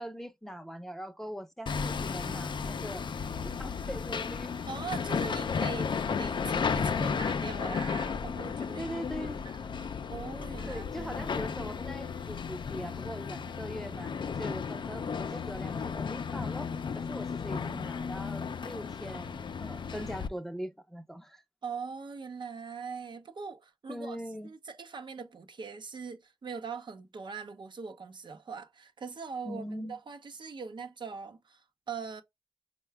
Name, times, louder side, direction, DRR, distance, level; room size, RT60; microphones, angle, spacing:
voice 1, 0.0-3.1 3.6-4.5 8.8-9.4 10.7-14.1 14.4-21.4 23.9-24.5 29.4-30.0, equal, 5° left, 0.6 m, -41 dB
Hammer, 1.7-20.3, left 6 dB, 60° left, 0.4 m, -34 dB
voice 2, 4.7-8.9 9.2-9.3 9.8-11.2 14.5-14.6 17.5-17.9 21.6-24.2 24.4-32.2, right 5 dB, 60° right, 0.6 m, -41 dB
4.6 x 2.2 x 3.3 m
cardioid pair, 70°, 9 cm